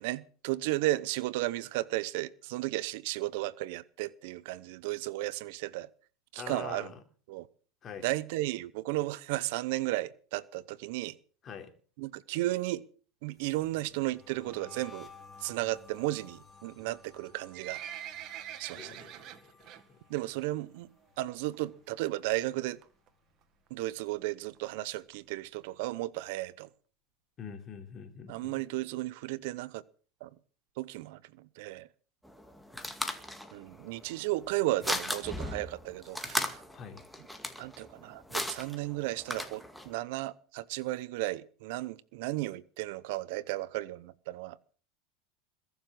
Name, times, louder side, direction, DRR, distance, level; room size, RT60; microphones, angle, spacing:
voice 1, 0.0-5.9 6.3-6.9 7.3-7.5 8.0-11.1 12.0-12.8 13.2-15.1 15.4-17.8 18.6-19.1 20.1-20.9 21.2-22.8 23.7-26.7 28.3-29.8 30.2-30.3 30.8-31.9 33.5-36.6 37.6-44.7, right 18 dB, 70° right, 0.8 m, -34 dB
voice 2, 6.4-6.9 7.8-8.1 11.4-11.7 18.7-19.7 27.4-28.6 36.7-37.0, left 7 dB, 35° left, 3.4 m, -44 dB
sound 1, 13.3-22.5 22.8-23.2 23.5-25.1, left 4 dB, 20° left, 3.9 m, -56 dB
Livestock farm animals working animals, 17.1-19.8 20.2-20.4 20.8-20.9 21.5-21.6 21.9-22.0 22.2-22.3 22.8-23.1 23.7-23.8 24.0-24.1 24.2-24.3 24.6-24.7 25.1-25.2 25.7-25.8 26.3-26.4, right 11 dB, 50° right, 1.9 m, -44 dB
sound 2, 32.2-39.9, left 1 dB, 5° left, 2.2 m, -37 dB
21.5 x 7.2 x 7.6 m
supercardioid pair, 110°, 0 cm